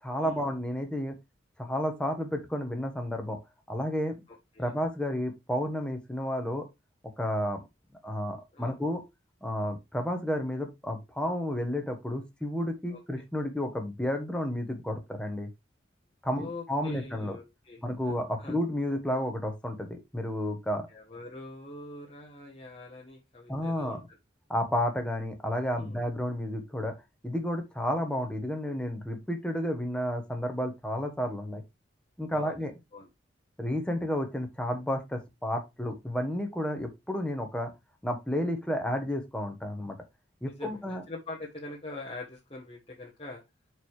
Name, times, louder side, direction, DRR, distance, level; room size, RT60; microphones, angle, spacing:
voice 1, 0.0-1.2 1.6-3.4 3.7-4.2 4.6-6.7 7.2-7.6 8.0-9.0 9.4-15.5 16.2-17.4 17.8-20.9 23.5-24.0 24.5-26.9 27.2-31.6 32.2-32.7 33.6-37.7 38.0-40.0 40.4-41.0, equal, 5° left, 4 dB, 1.3 m, -31 dB
voice 2, 4.3-4.7 8.5-8.7 12.9-13.2 16.3-18.5 18.9-19.0 20.9-24.2 25.7-26.0 32.3-33.1 40.4-43.4, left 2 dB, 30° left, -2 dB, 1.2 m, -44 dB
5.2 x 4.6 x 4.7 m, 0.22 s
head